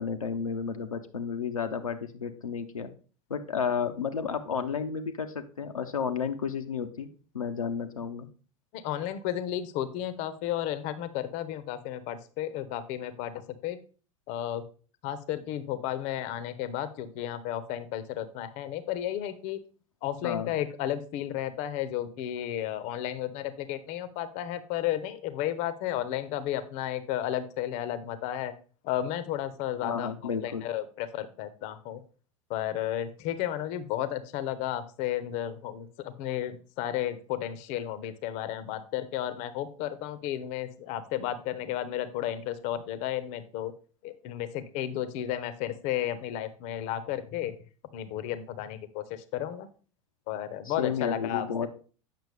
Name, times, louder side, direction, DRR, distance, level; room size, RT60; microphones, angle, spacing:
voice 1, 0.0-2.9 3.3-7.1 7.3-8.3 20.2-20.6 29.8-30.7 50.6-51.7, left 6 dB, 80° left, 5 dB, 0.6 m, -32 dB
voice 2, 8.7-13.8 14.3-14.6 15.0-19.6 20.0-28.5 28.8-30.1 30.4-32.0 32.5-43.7 44.0-47.5 47.9-49.7 50.3-51.5, left 12 dB, 45° left, 14 dB, 0.7 m, -33 dB
8.4 x 5.9 x 3.3 m, 0.39 s
figure-of-eight pair, 80°, 17 cm